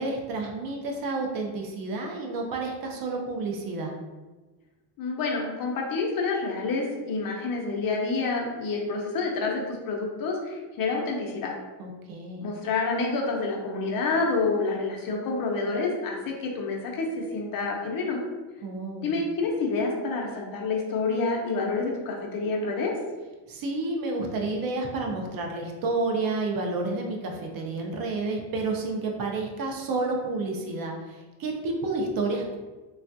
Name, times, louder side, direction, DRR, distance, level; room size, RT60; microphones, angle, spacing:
voice 1, 0.0-4.0 11.8-12.5 18.6-19.2 23.5-32.6, right 3 dB, 50° right, 1 dB, 0.6 m, -30 dB
voice 2, 5.0-11.5 12.4-18.2 19.0-22.9, left 3 dB, 50° left, 0 dB, 0.6 m, -28 dB
3.3 x 2.3 x 2.6 m, 1.2 s
cardioid pair, 140°, 45 cm